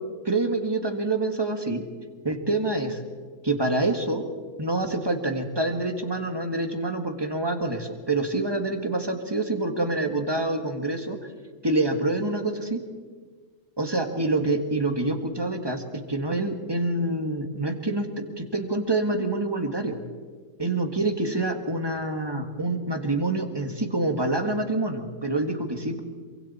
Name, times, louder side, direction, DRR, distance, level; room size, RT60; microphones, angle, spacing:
voice 1, 0.2-1.8 2.2-3.0 3.4-4.3 4.6-11.2 11.6-12.8 13.8-15.8 16.1-18.1 18.4-20.0 20.6-26.0, right 2 dB, 15° right, 5 dB, 1.7 m, -26 dB
27.0 x 24.0 x 4.3 m, 1.5 s
omnidirectional pair, 1.4 m